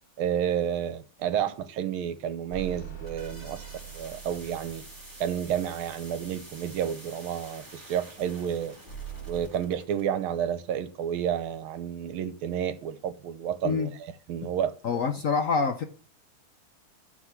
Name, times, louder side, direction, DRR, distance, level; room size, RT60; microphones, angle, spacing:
voice 1, 0.2-3.6 3.9-4.8 5.2-8.7 9.2-14.7, right 9 dB, 80° right, 1.7 m, -30 dB
sound 1, 2.5-7.0 8.9-9.4, right 8 dB, 35° left, 1.9 m, -43 dB
sound 2, 2.9-10.1, right 1 dB, 10° right, 2.0 m, -48 dB
voice 2, 14.8-15.8, left 5 dB, 75° left, 0.7 m, -26 dB
11.5 x 3.8 x 5.8 m
omnidirectional pair, 2.3 m